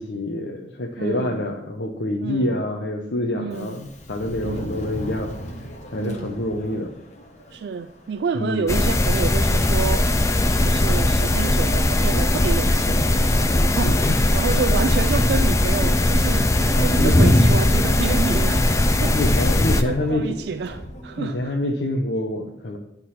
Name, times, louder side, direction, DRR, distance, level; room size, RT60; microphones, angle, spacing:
voice 1, 0.0-5.3 5.9-6.9 8.3-8.7 13.6-14.2 16.7-17.3 19.1-20.3 21.2-22.8, left 1 dB, 90° left, 0.8 m, -26 dB
voice 2, 1.0-1.4 2.2-2.6 3.3-3.8 4.4-4.9 6.0-6.4 7.5-10.1 10.6-13.1 13.5-19.4 19.7-21.5, right 5 dB, 70° right, 0.3 m, -29 dB
Subway metro underground, 3.4-21.8, equal, 40° left, 1.2 m, -41 dB
sound 1, 8.7-19.8, left 1 dB, 15° left, 0.4 m, -19 dB
11.0 x 3.8 x 5.7 m
head